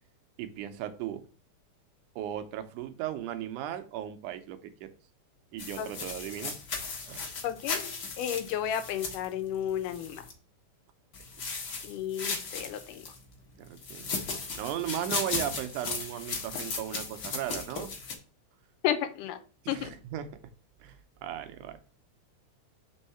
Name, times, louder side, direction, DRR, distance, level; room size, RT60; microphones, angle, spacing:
voice 1, 0.4-1.2 2.2-4.9 5.5-6.6 7.1-7.3 13.6-14.1 14.6-17.9 19.7-20.3 20.8-21.8, right 11 dB, 80° right, 9 dB, 2.1 m, -36 dB
sound 1, 5.6-10.3 11.1-13.2 13.8-18.1, left 4 dB, 50° left, 1.2 m, -36 dB
voice 2, 7.4-10.2 11.8-13.0 18.8-19.4 19.7-19.9, left 10 dB, 85° left, 9 dB, 2.3 m, -32 dB
5.4 x 3.5 x 5.5 m, 0.38 s
omnidirectional pair, 3.7 m